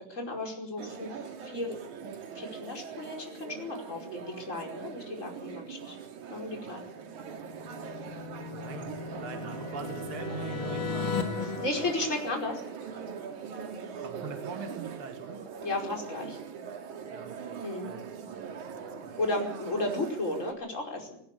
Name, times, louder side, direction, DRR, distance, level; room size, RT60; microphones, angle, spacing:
voice 1, 0.1-1.1 1.4-1.7 2.4-6.0 6.3-6.8 11.6-12.6 15.6-16.4 17.6-17.9 19.2-21.1, left 2 dB, 20° left, 1 dB, 5.2 m, -34 dB
sound 1, 0.8-20.5, right 6 dB, 65° right, 3.5 m, -41 dB
sound 2, 7.1-12.9, left 5 dB, 45° left, 2.2 m, -37 dB
voice 2, 8.1-11.2 14.0-15.4 17.1-19.2, right 5 dB, 45° right, 4 dB, 3.0 m, -43 dB
19.5 x 19.5 x 8.3 m, 0.65 s
omnidirectional pair, 3.7 m